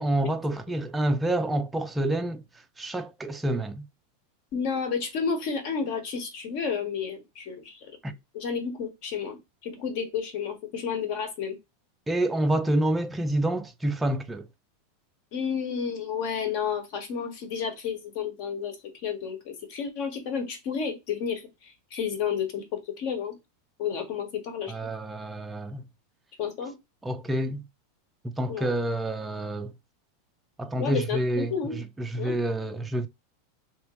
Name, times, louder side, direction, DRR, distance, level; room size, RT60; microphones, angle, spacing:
voice 1, 0.0-2.4 2.8-3.9 8.0-8.1 12.1-14.5 24.7-25.8 27.0-27.7 28.2-29.7 30.6-33.1, right 1 dB, 10° right, 0.4 m, -28 dB
voice 2, 4.5-7.9 8.3-11.6 15.3-18.8 19.0-23.3 23.8-24.7 26.4-26.7 28.5-28.7 30.8-31.8 32.2-32.4, left 6 dB, 55° left, 1.4 m, -31 dB
3.3 x 2.9 x 3.1 m
supercardioid pair, 140°, 0 cm